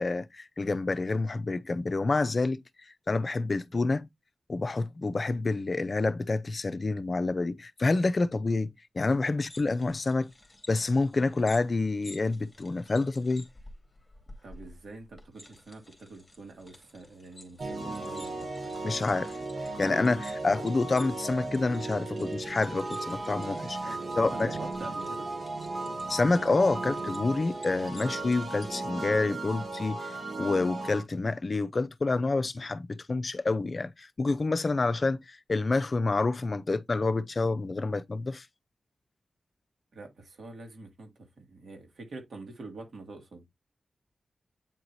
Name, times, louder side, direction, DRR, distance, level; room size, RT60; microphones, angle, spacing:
voice 1, 0.0-2.6 3.1-4.1 4.5-10.3 10.7-13.5 18.8-19.3 19.8-24.5 26.1-38.5, left 3 dB, 40° left, 0.6 m, -28 dB
sound 1, 9.4-28.7, left 1 dB, 20° left, 2.4 m, -53 dB
voice 2, 14.4-18.5 23.8-25.3 39.9-43.4, right 3 dB, 70° right, 2.2 m, -45 dB
sound 2, 17.6-31.0, right 2 dB, 55° right, 1.6 m, -36 dB
8.8 x 4.6 x 2.7 m
wide cardioid pair, 135°, 0 cm